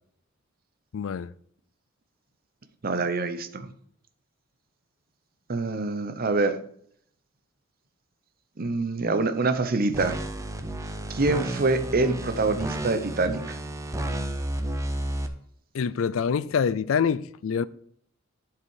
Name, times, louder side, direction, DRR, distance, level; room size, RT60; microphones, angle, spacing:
voice 1, 0.9-1.3 15.7-17.6, left 6 dB, 80° left, 0.4 m, -25 dB
voice 2, 2.8-3.7 5.5-6.6 8.6-10.2 11.1-13.6, right 3 dB, 45° right, 0.8 m, -25 dB
sound 1, 9.9-15.3, right 1 dB, 15° right, 0.7 m, -32 dB
11.5 x 4.9 x 4.8 m
head